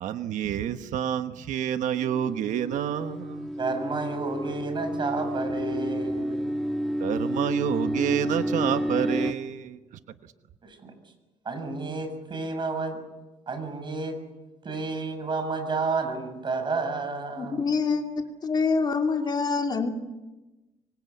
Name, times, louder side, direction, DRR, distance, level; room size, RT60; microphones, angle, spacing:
voice 1, 0.0-3.4 7.0-9.7, right 10 dB, 90° right, 9 dB, 1.2 m, -28 dB
sound 1, 2.0-9.3, equal, ahead, 1.7 m, -30 dB
voice 2, 3.6-6.5 10.6-11.0 11.5-13.0 13.5-14.2 14.6-17.7, right 3 dB, 40° right, 7 dB, 6.8 m, -31 dB
voice 3, 17.4-19.9, left 4 dB, 35° left, 4 dB, 2.8 m, -26 dB
25.0 x 24.5 x 8.4 m, 1.1 s
cardioid pair, 125°, 13 cm